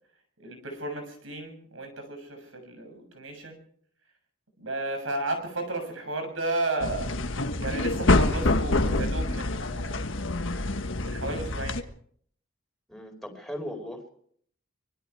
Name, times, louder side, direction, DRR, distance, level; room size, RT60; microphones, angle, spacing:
voice 1, 0.4-3.6 4.6-7.1 7.6-10.2 11.0-11.8, right 2 dB, 85° right, 6 dB, 6.8 m, -33 dB
sound 1, 6.8-11.8, left 2 dB, 80° left, 1.5 m, -26 dB
voice 2, 12.9-14.1, equal, ahead, 2 dB, 4.4 m, -38 dB
25.0 x 21.5 x 4.8 m, 0.62 s
head